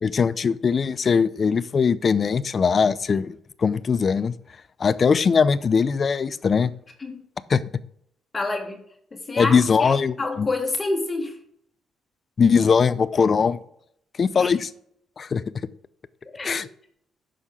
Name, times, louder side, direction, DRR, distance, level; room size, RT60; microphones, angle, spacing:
voice 1, 0.0-4.3 4.8-6.7 7.5-7.6 9.4-10.5 12.4-13.6 14.2-14.7 15.2-15.4 16.4-16.7, left 5 dB, 45° left, 17 dB, 0.5 m, -20 dB
voice 2, 8.3-8.8 9.1-11.4 14.3-14.5 16.2-16.6, left 2 dB, 25° left, 4 dB, 1.6 m, -28 dB
9.9 x 6.4 x 3.7 m, 0.70 s
cardioid pair, 90°, 0 cm